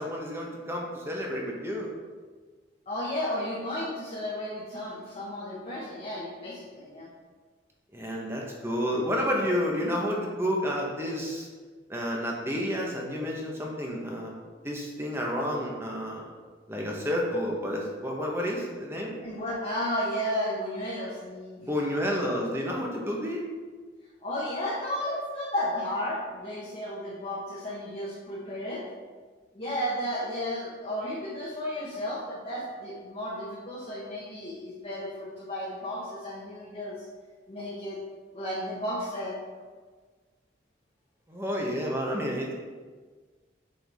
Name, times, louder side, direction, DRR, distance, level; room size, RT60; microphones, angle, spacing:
voice 1, 0.0-1.9 7.9-11.5 11.9-14.3 14.6-16.3 16.7-19.2 21.6-23.4 41.3-42.5, equal, 15° right, -1 dB, 1.0 m, -30 dB
voice 2, 2.9-7.1 19.2-21.6 24.2-28.8 29.5-36.9 37.5-38.0 38.3-39.3, left 1 dB, 35° left, -7 dB, 1.2 m, -33 dB
7.7 x 4.6 x 3.5 m, 1.4 s
head